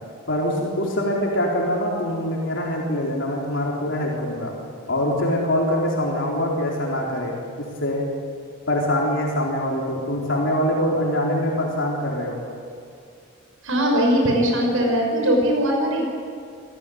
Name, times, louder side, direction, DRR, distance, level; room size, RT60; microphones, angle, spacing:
voice 1, 0.3-4.5 4.9-7.4 7.8-8.1 8.7-12.4, left 1 dB, 60° left, -3 dB, 4.2 m, -24 dB
voice 2, 13.6-16.0, equal, 80° right, 1 dB, 5.7 m, -20 dB
27.5 x 16.0 x 9.4 m, 2.4 s
head